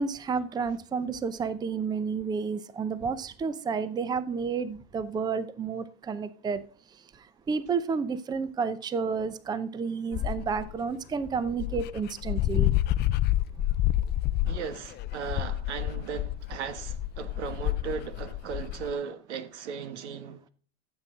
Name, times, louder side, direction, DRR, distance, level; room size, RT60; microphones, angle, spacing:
voice 1, 0.0-6.6 7.5-12.7, right 5 dB, 10° right, 0.6 m, -31 dB
Dog, 10.1-10.7 11.3-11.4 11.6-18.9, left 14 dB, 30° left, 0.4 m, -28 dB
voice 2, 14.5-20.5, right 6 dB, 85° right, 1.5 m, -37 dB
13.5 x 7.7 x 3.7 m
supercardioid pair, 125°, 33 cm